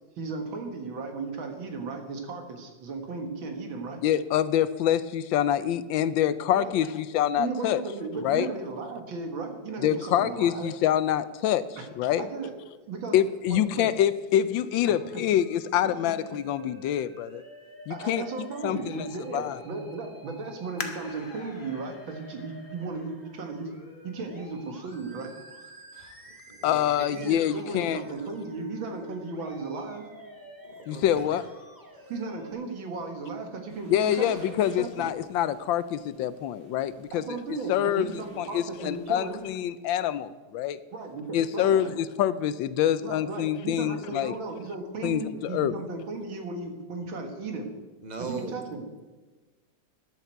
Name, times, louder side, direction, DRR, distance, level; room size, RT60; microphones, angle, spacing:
voice 1, 0.2-4.0 6.5-6.7 7.4-10.7 11.8-11.9 12.2-12.5 12.9-13.2 13.5-13.9 15.1-15.2 17.9-25.3 27.1-30.1 32.1-35.1 37.1-39.4 40.9-41.9 43.0-47.7 48.2-48.8, right 3 dB, 85° right, 4 dB, 2.4 m, -36 dB
voice 2, 4.0-7.8 8.2-8.5 9.8-12.2 13.1-17.4 17.9-18.2 18.6-19.1 19.3-19.6 26.6-28.0 30.9-31.4 33.9-37.4 37.7-38.1 38.4-40.8 41.3-44.3 45.0-45.7, left 10 dB, 80° left, 15 dB, 1.3 m, -26 dB
Musical instrument, 14.6-32.5, right 1 dB, 10° right, 1.6 m, -49 dB
sound 1, 20.8-24.1 24.7-24.8 25.5-25.9 26.2-26.3, left 4 dB, 40° left, 1.2 m, -43 dB
voice 3, 25.9-27.3 30.6-31.3 48.0-48.6, right 4 dB, 25° right, 5 dB, 1.1 m, -39 dB
sound 2, 33.7-39.4, right 1 dB, 65° right, 5.1 m, -54 dB
14.0 x 10.5 x 4.6 m, 1.3 s
omnidirectional pair, 2.1 m